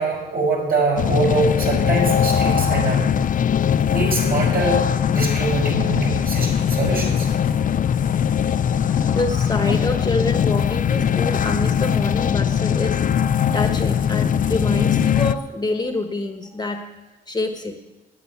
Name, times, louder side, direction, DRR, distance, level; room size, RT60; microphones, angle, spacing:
voice 1, 0.0-3.1 3.9-4.8 5.1-7.7 8.9-9.2, right 3 dB, 50° right, -1 dB, 5.7 m, -24 dB
sound 1, 1.0-15.3, left 8 dB, 45° left, 0.5 m, -20 dB
voice 2, 9.1-13.0 13.5-16.8 17.3-17.7, left 2 dB, 20° left, 5 dB, 1.3 m, -26 dB
10.5 x 9.5 x 9.5 m, 1.1 s
cardioid pair, 90°, 20 cm